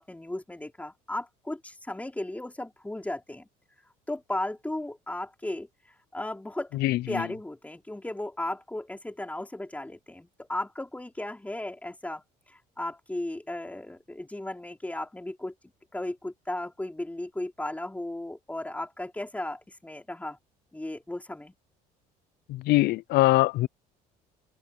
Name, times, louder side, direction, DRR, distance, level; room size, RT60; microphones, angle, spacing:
voice 1, 0.0-3.5 4.1-5.7 6.1-6.8 7.1-12.2 12.5-15.5 15.9-20.4 20.7-21.5, left 1 dB, 10° left, 3.9 m, -35 dB
voice 2, 22.5-23.7, left 18 dB, 65° left, 0.5 m, -22 dB
open air
supercardioid pair, 85°, 18 cm